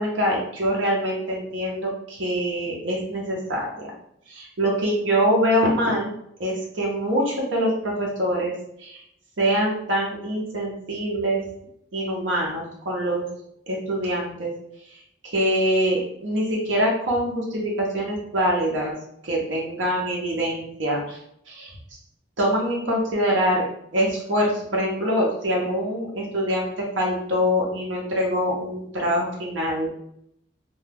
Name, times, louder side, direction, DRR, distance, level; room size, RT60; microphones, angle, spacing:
voice 1, 0.0-3.6 4.3-6.1 6.4-8.5 8.8-9.0 9.4-11.4 11.9-13.2 13.7-14.5 15.3-18.9 19.2-21.2 21.5-21.7 22.4-23.6 23.9-26.7 27.0-29.9, equal, 75° right, -3 dB, 0.7 m, -24 dB
2.3 x 2.2 x 3.3 m, 0.72 s
head